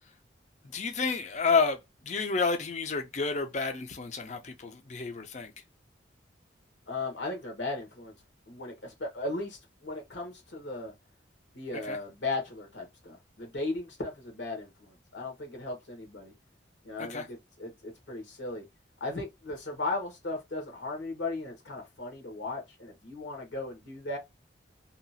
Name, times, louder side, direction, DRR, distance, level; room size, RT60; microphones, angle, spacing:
voice 1, 0.7-1.8 2.0-5.5 11.9-12.0 17.0-17.3, left 4 dB, 40° left, 0.5 m, -30 dB
voice 2, 6.9-8.1 8.5-10.9 11.5-16.3 16.8-18.6 19.0-24.2, left 2 dB, 75° left, 1.2 m, -37 dB
2.8 x 2.4 x 2.7 m
head